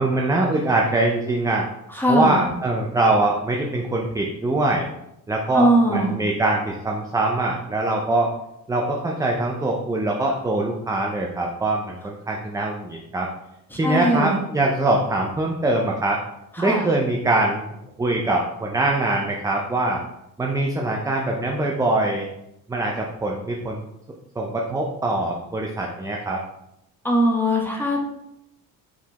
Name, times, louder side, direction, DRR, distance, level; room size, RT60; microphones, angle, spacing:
voice 1, 0.0-1.7 2.1-4.9 5.3-8.3 8.7-13.3 13.8-16.2 16.6-17.7 18.0-20.0 20.4-22.3 22.7-23.8 24.4-26.4, right 2 dB, 10° right, 0 dB, 0.4 m, -23 dB
voice 2, 1.9-2.4 5.5-6.1 13.7-14.4 16.6-16.9 27.0-28.1, right 1 dB, 5° left, -1 dB, 1.0 m, -20 dB
4.8 x 3.3 x 2.9 m, 0.82 s
cardioid pair, 110°, 35 cm